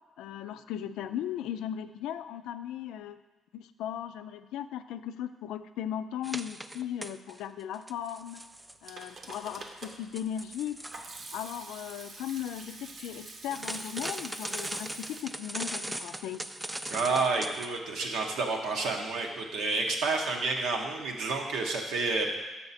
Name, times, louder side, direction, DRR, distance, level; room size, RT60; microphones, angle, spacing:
voice 1, 0.2-3.2 3.5-8.5 8.8-10.8 11.3-16.4, left 10 dB, 90° left, 11 dB, 0.3 m, -37 dB
sound 1, 6.2-7.4 7.7-11.1 13.5-17.8, right 1 dB, 10° right, 0.3 m, -39 dB
Hands / Sink (filling or washing), 8.6-15.2, right 3 dB, 55° right, 0.9 m, -46 dB
voice 2, 16.9-22.4, right 3 dB, 85° right, 1 dB, 1.0 m, -30 dB
6.7 x 5.7 x 4.1 m, 1.2 s
cardioid pair, 80°, 0 cm